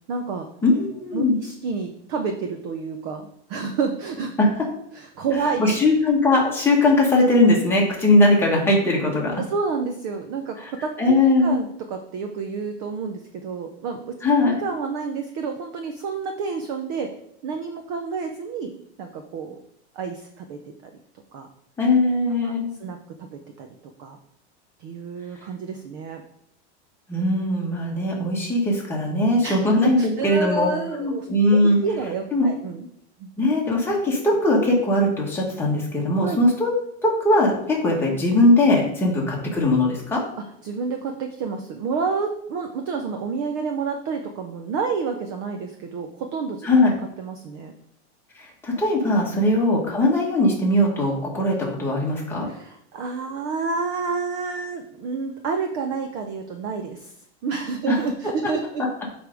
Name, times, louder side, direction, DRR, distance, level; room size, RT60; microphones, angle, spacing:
voice 1, 0.1-0.5 1.1-4.3 4.9-5.8 9.4-14.2 14.4-17.1 17.4-19.6 19.9-20.9 21.3-21.5 22.4-22.5 22.8-23.7 24.0-24.2 24.8-26.2 29.4-32.9 33.2-33.3 36.2-36.4 40.6-46.7 47.2-47.7 49.3-49.4 52.5-57.1 57.4-58.9, right 5 dB, 25° right, 5 dB, 0.3 m, -29 dB
voice 2, 0.6-1.4 5.6-9.3 10.6-10.7 11.0-11.6 14.2-14.6 21.8-22.8 27.1-30.7 31.0-31.8 32.3-32.5 33.4-36.7 37.0-40.2 46.6-46.9 48.4-52.5 57.9-58.0, left 2 dB, 5° left, -3 dB, 1.3 m, -20 dB
7.8 x 3.4 x 5.0 m, 0.73 s
supercardioid pair, 170°, 34 cm